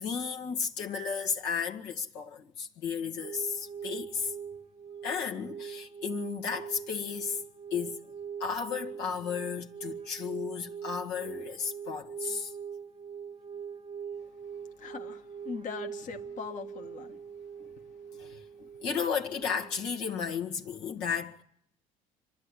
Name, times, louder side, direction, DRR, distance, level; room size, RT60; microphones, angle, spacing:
voice 1, 0.0-4.3 5.0-7.4 7.7-8.0 8.4-12.5 17.6-17.7 18.2-21.4, left 6 dB, 65° left, 1.9 m, -34 dB
sound 1, 3.2-20.1, right 7 dB, 35° right, 0.8 m, -42 dB
voice 2, 14.8-17.1, left 6 dB, 45° left, 1.7 m, -41 dB
26.0 x 12.0 x 9.9 m
hypercardioid pair, 65°, 18 cm